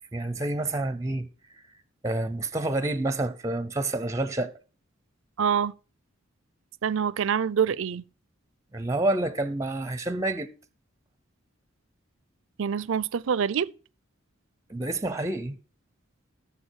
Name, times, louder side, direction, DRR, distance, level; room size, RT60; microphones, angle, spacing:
voice 1, 0.1-1.3 2.0-4.5 8.7-10.5 14.7-15.6, right 2 dB, 15° right, 0.6 m, -28 dB
voice 2, 5.4-5.7 6.8-8.0 12.6-13.7, right 7 dB, 70° right, 0.5 m, -25 dB
14.0 x 7.0 x 4.5 m
head